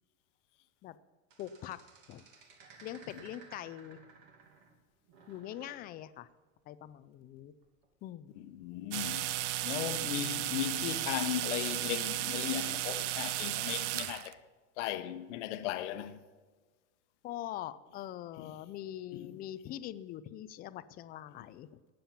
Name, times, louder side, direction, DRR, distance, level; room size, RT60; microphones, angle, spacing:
sound 1, 1.3-4.8 5.1-5.9 7.6-7.9, right 4 dB, 50° right, 2.7 m, -57 dB
voice 1, 1.4-2.2 2.8-4.0 5.3-6.3 6.7-7.5 8.0-8.3 17.2-21.8, left 12 dB, 25° left, 0.4 m, -43 dB
voice 2, 8.4-9.4 9.6-14.4 14.8-16.2 19.1-19.4, left 12 dB, 65° left, 1.1 m, -37 dB
sound 2, 8.9-14.3, right 15 dB, 65° right, 0.7 m, -34 dB
18.5 x 7.7 x 5.7 m
supercardioid pair, 145°, 39 cm